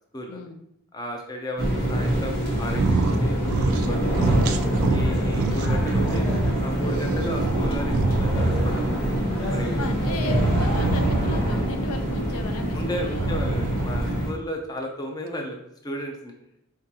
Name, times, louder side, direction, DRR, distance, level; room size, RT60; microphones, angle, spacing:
voice 1, 0.3-0.6 7.1-7.2 9.6-13.4, left 3 dB, 75° left, 6 dB, 0.6 m, -35 dB
voice 2, 0.9-4.0 4.9-6.4 6.6-8.9 9.5-9.9 10.7-10.8 12.7-16.3, equal, 15° left, 2 dB, 0.4 m, -34 dB
sound 1, 1.6-14.3, equal, 40° left, 1.3 m, -25 dB
sound 2, 2.7-3.2 3.4-3.9 4.1-6.5 7.0-8.9 10.2-11.7 13.1-14.1, right 3 dB, 70° right, 0.4 m, -25 dB
sound 3, 4.5-10.8, equal, 60° left, 1.2 m, -35 dB
4.7 x 3.7 x 2.8 m, 0.79 s
head